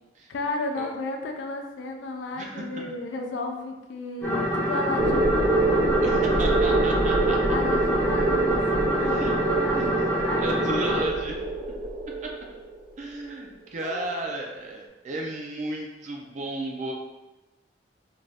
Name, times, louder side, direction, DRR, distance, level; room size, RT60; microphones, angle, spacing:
voice 1, 0.3-5.4 7.5-11.1 13.8-14.1, left 3 dB, 80° left, 3 dB, 0.3 m, -33 dB
voice 2, 2.4-2.8 6.0-7.4 9.0-9.3 9.7-9.9 10.4-11.4 12.2-12.3 13.0-16.9, right 2 dB, 40° right, 0 dB, 0.4 m, -34 dB
sound 1, 4.2-11.0, right 1 dB, 15° left, 0.6 m, -26 dB
sound 2, 5.0-12.8, right 2 dB, 85° right, 0.6 m, -25 dB
2.5 x 2.3 x 3.2 m, 1.1 s
head